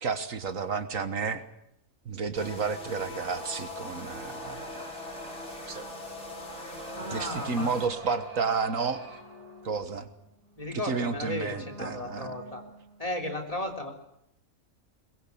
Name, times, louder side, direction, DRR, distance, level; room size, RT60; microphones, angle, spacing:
voice 1, 0.0-1.4 2.1-4.9 5.7-5.9 7.1-9.0 9.6-10.1 10.9-12.3, right 5 dB, 70° right, 10 dB, 1.8 m, -31 dB
sound 1, 2.4-7.9, left 4 dB, 55° left, 3.0 m, -43 dB
sound 2, 2.8-13.1, right 2 dB, 55° right, 4.6 m, -45 dB
voice 2, 6.9-7.7 10.6-12.6 13.0-13.9, left 1 dB, 25° left, 5 dB, 3.7 m, -34 dB
22.5 x 21.5 x 8.4 m, 0.77 s
omnidirectional pair, 1.4 m